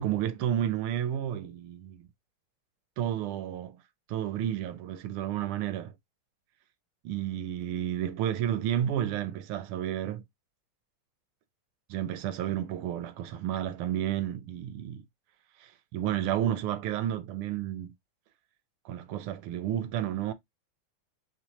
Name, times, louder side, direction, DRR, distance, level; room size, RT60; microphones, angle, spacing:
voice 1, 0.0-2.1 3.0-3.8 4.1-5.9 7.0-10.2 11.9-15.1 15.6-17.9 18.8-20.3, right 11 dB, 80° right, 1.4 m, -31 dB
4.5 x 2.4 x 2.7 m
omnidirectional pair, 2.4 m